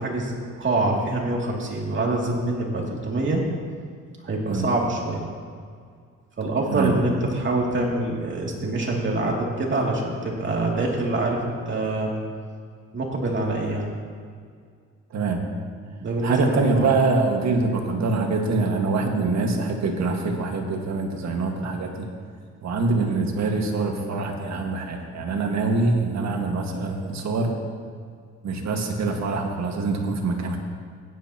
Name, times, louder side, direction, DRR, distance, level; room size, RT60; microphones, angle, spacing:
voice 1, 0.0-3.4 4.2-5.2 6.4-12.1 12.9-13.9 16.0-16.9, right 2 dB, 40° right, -2 dB, 2.7 m, -25 dB
voice 2, 15.1-15.5 16.2-22.1 22.6-27.6 28.4-30.6, right 3 dB, 65° right, 2 dB, 1.8 m, -24 dB
16.0 x 11.0 x 3.0 m, 2.1 s
cardioid pair, 90°, 30 cm